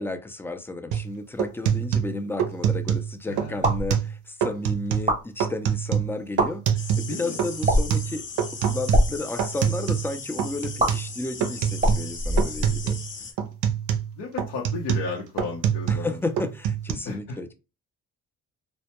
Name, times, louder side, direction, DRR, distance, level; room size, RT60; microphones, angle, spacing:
voice 1, 0.0-8.3 8.6-13.3 15.9-17.5, left 2 dB, 10° left, 0.3 m, -33 dB
sound 1, 0.9-1.1 1.4-3.1 3.4-4.1 4.4-5.1 5.4-7.1 7.4-10.1 10.4-11.1 11.4-12.1 12.4-13.1 13.4-16.1 16.4-16.9, right 8 dB, 80° right, 0.5 m, -26 dB
voice 2, 3.3-3.7 7.1-7.4 14.2-16.2 17.0-17.4, left 4 dB, 90° left, 0.7 m, -34 dB
sound 2, 3.6-3.9 4.9-5.2 6.2-6.5 7.6-8.0 8.8-9.1 10.8-10.9 11.8-12.9, equal, 25° right, 0.9 m, -22 dB
sound 3, 6.7-13.3, left 5 dB, 40° left, 0.7 m, -38 dB
2.1 x 2.1 x 2.8 m
cardioid pair, 90°, 30 cm